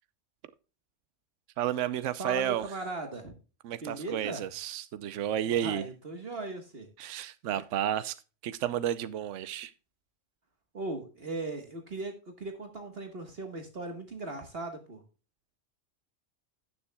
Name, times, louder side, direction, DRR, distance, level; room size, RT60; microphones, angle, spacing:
voice 1, 1.6-2.7 3.6-5.9 7.0-8.2 8.4-9.7, right 11 dB, 75° right, 1.0 m, -31 dB
voice 2, 2.2-3.4 3.8-4.4 5.5-6.9 10.7-15.0, right 2 dB, 50° right, 1.6 m, -38 dB
16.5 x 7.1 x 2.2 m
omnidirectional pair, 1.3 m